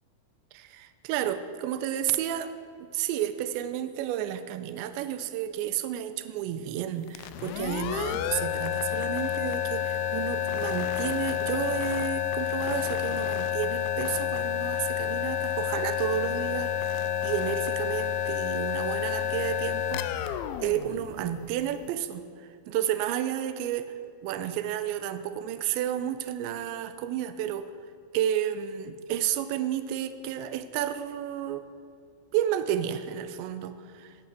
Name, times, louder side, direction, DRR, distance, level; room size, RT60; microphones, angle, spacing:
voice 1, 0.5-2.5 2.8-23.9 24.2-27.7 28.1-31.7 32.3-34.2, right 11 dB, 80° right, 11 dB, 2.6 m, -31 dB
sound 1, 7.1-21.7, left 9 dB, 85° left, 2.7 m, -30 dB
18.0 x 9.0 x 7.4 m, 2.4 s
omnidirectional pair, 5.8 m